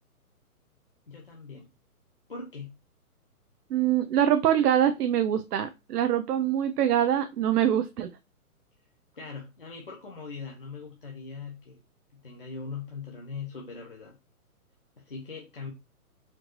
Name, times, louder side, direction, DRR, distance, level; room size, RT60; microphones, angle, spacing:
voice 1, 1.1-1.7 2.3-2.7 9.1-11.8 12.1-14.2 15.0-15.7, left 5 dB, 40° left, -2 dB, 0.6 m, -40 dB
voice 2, 3.7-8.1, right 10 dB, 85° right, 10 dB, 0.6 m, -24 dB
4.3 x 2.6 x 2.9 m, 0.25 s
hypercardioid pair, 180°, 45 cm